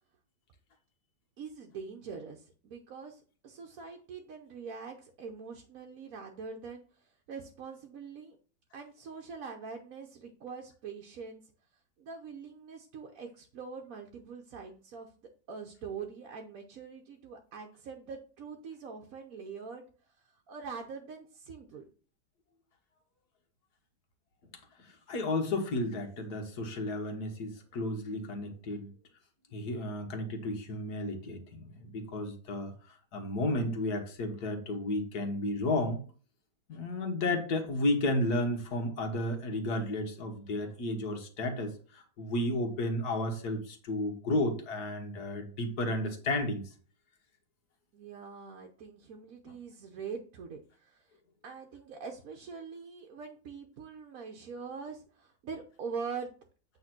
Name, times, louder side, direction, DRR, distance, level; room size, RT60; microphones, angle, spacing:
voice 1, 1.4-6.8 7.3-8.4 8.7-11.4 12.0-15.1 15.5-19.9 20.5-21.8 47.9-51.1 51.4-56.3, right 5 dB, 60° right, 2 dB, 1.2 m, -43 dB
voice 2, 24.8-28.9 29.5-32.7 33.1-36.0 36.7-46.6, left 1 dB, 70° left, 4 dB, 1.8 m, -32 dB
8.4 x 3.5 x 5.9 m, 0.41 s
omnidirectional pair, 1.8 m